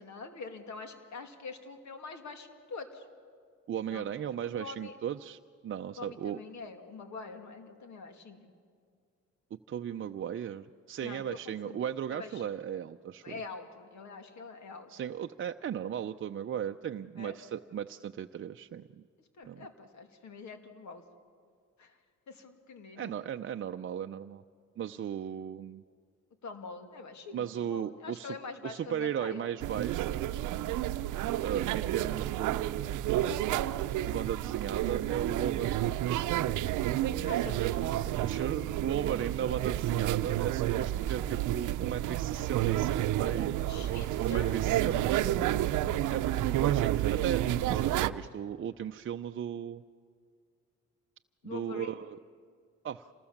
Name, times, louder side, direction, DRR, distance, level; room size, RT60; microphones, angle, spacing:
voice 1, 0.0-3.0 3.9-4.0 4.6-5.0 6.0-8.5 11.0-11.8 12.1-12.5 13.2-14.9 17.2-17.4 19.4-21.0 21.8-22.0 22.3-23.1 26.4-29.5 37.3-37.9 43.7-44.5 47.5-47.6 51.4-51.9, left 4 dB, 65° left, 6 dB, 2.6 m, -45 dB
voice 2, 3.7-6.4 9.5-13.4 14.9-19.0 19.4-19.7 23.0-24.4 24.8-25.8 27.3-28.4 28.6-30.3 31.4-33.0 34.0-35.9 38.2-43.5 44.2-45.4 46.1-49.8 51.4-52.2 52.8-53.1, right 9 dB, 45° right, 6 dB, 0.6 m, -36 dB
sound 1, 29.6-48.1, right 13 dB, 85° right, 0.7 m, -30 dB
27.0 x 19.5 x 7.3 m, 2.1 s
cardioid pair, 90°, 30 cm